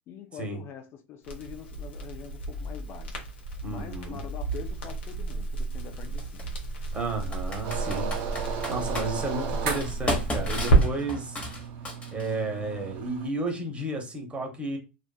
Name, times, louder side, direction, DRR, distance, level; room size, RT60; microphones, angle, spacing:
voice 1, 0.1-3.3 3.7-6.6, left 9 dB, 40° left, 0.4 m, -44 dB
Crackle, 1.2-10.8, right 3 dB, 80° left, 0.8 m, -30 dB
voice 2, 3.6-4.2 6.9-8.1 8.7-11.4 12.1-14.8, right 2 dB, 20° right, 0.9 m, -32 dB
Computer keyboard, 4.5-4.6 6.2-6.4 7.3-9.1 9.7-12.4, left 1 dB, 20° left, 1.0 m, -33 dB
sound 1, 7.6-13.3, right 7 dB, 60° right, 0.8 m, -35 dB
2.4 x 2.3 x 2.3 m
hypercardioid pair, 95°, 6 cm